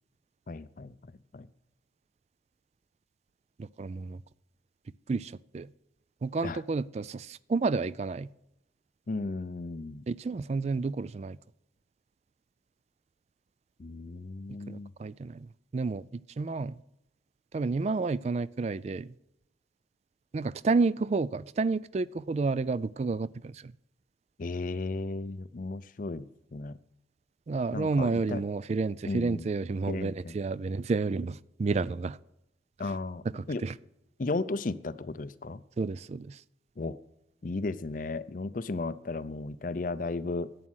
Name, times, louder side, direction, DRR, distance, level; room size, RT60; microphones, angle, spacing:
voice 1, 0.5-0.9 1.3-1.5 6.4-6.6 9.1-10.0 13.8-14.9 24.4-26.8 27.7-28.4 29.0-29.5 29.9-30.3 32.8-33.6 34.2-35.6 36.8-37.0 37.4-40.5, left 3 dB, 45° left, 0.5 m, -35 dB
voice 2, 3.6-4.2 5.1-5.7 6.2-8.3 10.1-11.4 14.7-16.8 17.5-19.1 20.3-23.7 27.5-32.2 33.3-33.8 35.8-36.4, right 4 dB, 35° right, 0.3 m, -30 dB
11.0 x 8.6 x 6.3 m
head